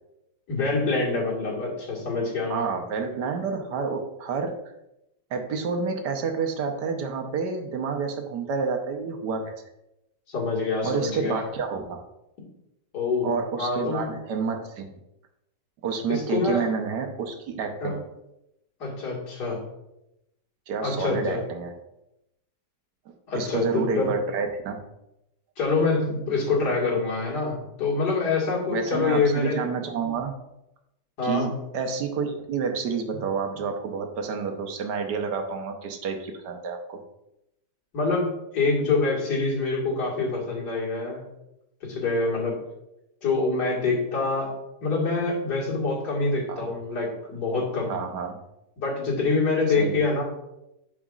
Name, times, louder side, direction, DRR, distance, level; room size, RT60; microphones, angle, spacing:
voice 1, 0.5-2.7 10.3-11.4 12.9-14.0 16.1-16.6 17.8-17.9 18.8-19.6 20.8-21.4 23.3-24.1 25.6-29.6 31.2-31.5 37.9-41.2 41.8-42.6 43.2-44.5 44.8-47.9 48.8-50.2, left 3 dB, 75° left, -4 dB, 2.5 m, -25 dB
voice 2, 2.5-4.6 5.3-9.5 10.8-12.0 13.2-14.9 15.8-18.0 20.7-21.7 23.3-24.8 28.7-30.4 31.2-37.0 46.5-46.7 47.9-48.4 49.8-50.0, right 5 dB, 80° right, 5 dB, 1.4 m, -29 dB
11.0 x 5.0 x 2.4 m, 0.88 s
omnidirectional pair, 1.8 m